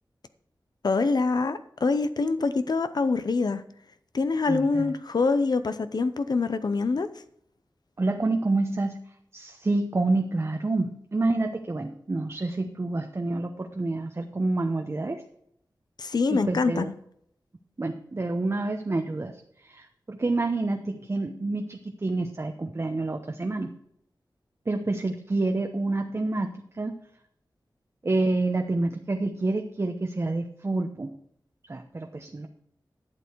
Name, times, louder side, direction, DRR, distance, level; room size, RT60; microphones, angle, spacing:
voice 1, 0.8-3.6 4.1-7.1 16.0-16.9, left 4 dB, 65° left, 11 dB, 0.7 m, -25 dB
voice 2, 4.5-4.9 8.0-9.0 9.3-15.2 16.3-16.9 17.8-19.4 19.6-23.7 24.7-26.5 26.8-27.0 28.0-31.1 31.7-32.5, right 2 dB, 35° right, 4 dB, 0.9 m, -28 dB
11.5 x 8.6 x 4.6 m, 0.70 s
wide cardioid pair, 100°, 7 cm